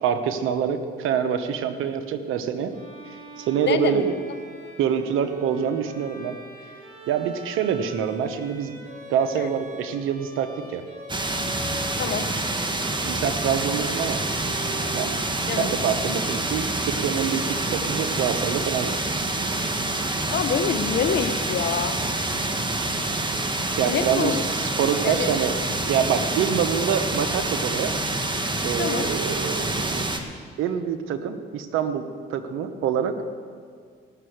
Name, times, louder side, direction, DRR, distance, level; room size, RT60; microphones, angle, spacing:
voice 1, 0.0-2.7 3.4-4.1 4.8-6.4 7.1-8.8 9.1-10.8 13.0-14.2 14.9-15.2 15.6-19.0 23.7-25.6 25.9-27.9 28.6-30.1 30.6-33.2, right 8 dB, 80° right, 9 dB, 1.1 m, -26 dB
Bowed string instrument, 2.7-18.6, right 1 dB, 40° right, 4.4 m, -43 dB
voice 2, 3.7-4.1 9.4-9.5 12.0-12.3 15.5-15.7 20.3-21.9 23.9-24.4 25.0-25.3 28.8-29.1, left 7 dB, 60° left, 8 dB, 1.1 m, -26 dB
sound 1, 11.1-30.2, right 2 dB, 20° right, 1.5 m, -27 dB
17.0 x 6.7 x 7.9 m, 2.1 s
supercardioid pair, 70°, 21 cm